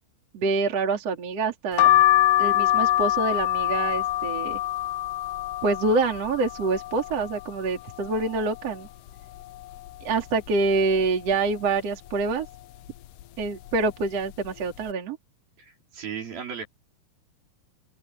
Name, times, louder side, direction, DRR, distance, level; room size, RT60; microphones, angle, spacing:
voice 1, 0.3-1.9 2.4-4.6 5.6-8.9 10.0-12.5 13.4-15.2, right 3 dB, 40° right, 3.8 m, -26 dB
sound 1, 1.8-7.5 7.9-8.7 9.1-9.2 9.3-10.5 11.0-11.3 12.1-12.4 13.2-13.4 13.7-13.9, left 14 dB, 80° left, 1.9 m, -24 dB
voice 2, 15.6-16.7, right 7 dB, 60° right, 6.1 m, -36 dB
open air
omnidirectional pair, 4.7 m